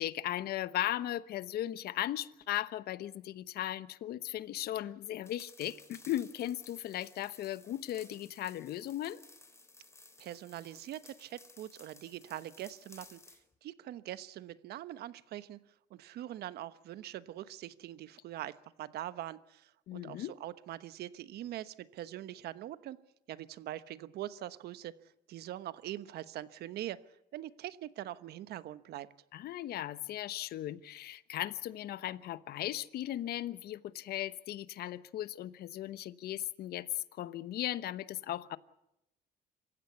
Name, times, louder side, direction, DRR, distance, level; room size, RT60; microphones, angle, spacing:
voice 1, 0.0-9.2 19.9-20.3 29.3-38.6, left 13 dB, 65° left, 15 dB, 1.0 m, -37 dB
sound 1, 5.2-13.4, left 3 dB, 15° left, 3.2 m, -57 dB
voice 2, 10.2-23.0 23.3-24.9 25.3-27.0 27.3-29.1, right 13 dB, 70° right, 14 dB, 1.1 m, -43 dB
26.5 x 15.5 x 8.2 m, 0.85 s
cardioid pair, 110°, 17 cm